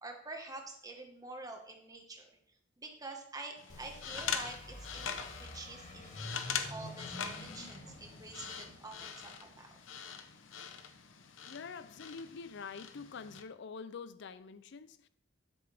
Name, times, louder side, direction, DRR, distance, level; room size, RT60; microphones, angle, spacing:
voice 1, 0.0-2.3 2.8-6.1 6.5-9.8, right 2 dB, 20° right, 1.5 m, -47 dB
sound 1, 3.6-13.4, left 7 dB, 80° left, 0.9 m, -43 dB
sound 2, 3.7-10.3, left 1 dB, 40° left, 1.9 m, -49 dB
voice 2, 11.4-15.1, left 5 dB, 65° left, 0.5 m, -46 dB
11.5 x 6.7 x 3.5 m
head